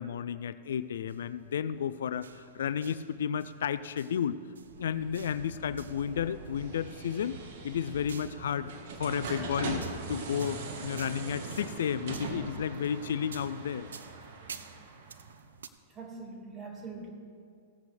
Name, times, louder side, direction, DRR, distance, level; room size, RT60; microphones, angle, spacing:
voice 1, 0.0-4.4 4.8-7.4 7.6-8.7 9.0-13.9, left 8 dB, 70° left, 14 dB, 0.3 m, -32 dB
sound 1, 0.7-15.7, right 6 dB, 80° right, 0.5 m, -52 dB
sound 2, 4.6-15.3, right 3 dB, 60° right, 1.4 m, -41 dB
voice 2, 15.9-17.1, right 3 dB, 25° right, 1 dB, 2.0 m, -43 dB
16.5 x 8.1 x 3.3 m, 2.2 s
hypercardioid pair, 105°, 0 cm